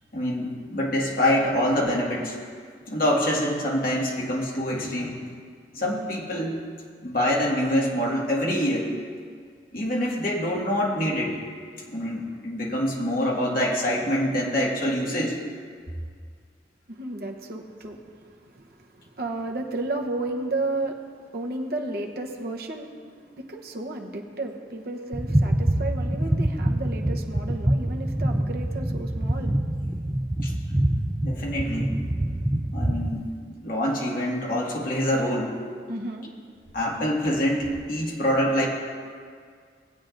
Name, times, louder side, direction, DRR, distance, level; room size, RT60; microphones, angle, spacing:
voice 1, 0.1-2.4 2.9-5.2 5.7-6.6 7.0-8.9 9.7-11.4 11.9-15.4 30.4-30.5 31.2-31.9 32.7-35.6 36.7-38.7, equal, 55° left, -3 dB, 1.8 m, -25 dB
voice 2, 16.9-21.0 21.3-23.1 23.4-29.5 35.9-36.3, right 2 dB, 60° right, 1 dB, 0.9 m, -33 dB
sound 1, 25.1-33.2, right 1 dB, 10° right, 0.4 m, -25 dB
18.5 x 8.5 x 2.6 m, 2.1 s
head